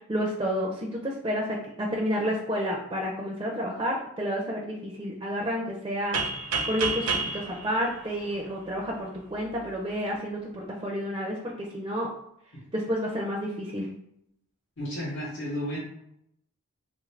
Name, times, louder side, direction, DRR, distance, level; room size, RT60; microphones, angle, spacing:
voice 1, 0.0-6.2 6.7-12.1 12.7-13.9, equal, 20° right, -1 dB, 0.4 m, -30 dB
sound 1, 6.1-8.9, right 4 dB, 75° right, 0.5 m, -30 dB
voice 2, 14.8-15.8, equal, 55° left, -7 dB, 0.8 m, -33 dB
3.2 x 2.4 x 3.2 m, 0.76 s
head